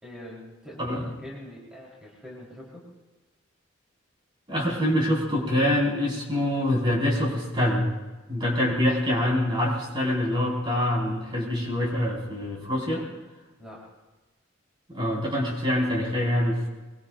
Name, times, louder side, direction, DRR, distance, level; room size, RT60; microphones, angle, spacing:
voice 1, 0.0-2.9 13.6-13.8, left 1 dB, 5° right, -6 dB, 4.2 m, -43 dB
voice 2, 4.5-7.9 8.3-13.0 14.9-16.7, left 1 dB, 25° right, -4 dB, 5.2 m, -25 dB
24.0 x 23.0 x 2.6 m, 1.2 s
head